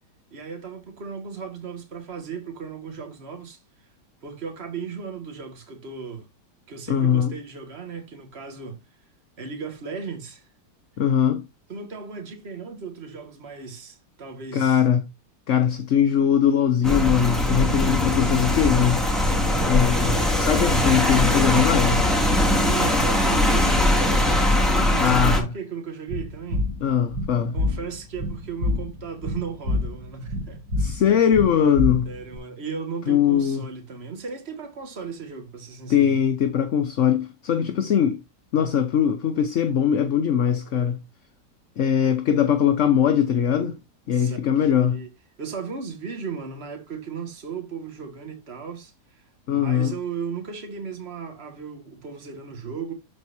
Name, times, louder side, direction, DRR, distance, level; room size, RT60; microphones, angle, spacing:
voice 1, 0.3-3.6 4.2-6.3 6.7-8.8 9.4-10.5 11.7-14.8 19.4-19.8 22.6-26.7 27.5-30.6 32.1-36.2 42.0-42.2 44.1-45.1 45.4-49.2 49.5-52.9, right 6 dB, 35° right, 2.1 m, -36 dB
voice 2, 6.9-7.3 11.0-11.4 14.5-15.0 15.5-19.0 19.7-22.0 25.0-25.5 26.8-27.6 30.7-32.1 33.1-33.7 35.9-38.2 38.5-41.0 41.8-43.8 44.1-45.0 49.5-49.9, left 8 dB, 55° left, 1.0 m, -21 dB
Rain, 16.8-25.4, left 1 dB, ahead, 2.3 m, -21 dB
sound 1, 26.1-32.4, left 2 dB, 70° right, 3.2 m, -28 dB
13.0 x 4.6 x 2.7 m
omnidirectional pair, 1.8 m